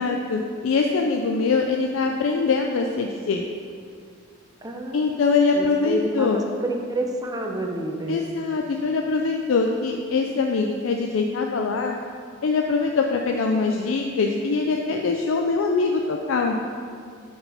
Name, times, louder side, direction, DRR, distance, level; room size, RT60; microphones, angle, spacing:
voice 1, 0.0-3.4 4.9-6.4 8.1-12.0 12.4-16.6, left 4 dB, 85° left, 2 dB, 0.4 m, -23 dB
voice 2, 4.6-5.0 5.5-8.2, right 1 dB, 20° right, 1 dB, 0.6 m, -28 dB
5.5 x 4.7 x 5.5 m, 2.2 s
head